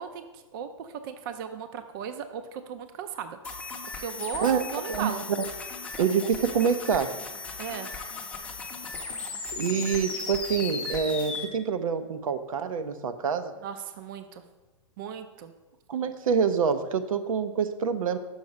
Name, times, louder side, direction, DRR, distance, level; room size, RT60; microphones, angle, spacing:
voice 1, 0.0-3.4 4.0-5.2 7.6-7.9 13.6-14.4 15.0-15.5, right 7 dB, 40° right, 9 dB, 0.5 m, -36 dB
sound 1, 3.4-11.4, left 4 dB, 5° left, 0.6 m, -36 dB
voice 2, 6.0-7.2 9.5-13.5 15.9-18.2, right 6 dB, 80° right, 9 dB, 0.7 m, -26 dB
6.4 x 4.7 x 5.3 m, 1.1 s
hypercardioid pair, 155°, 17 cm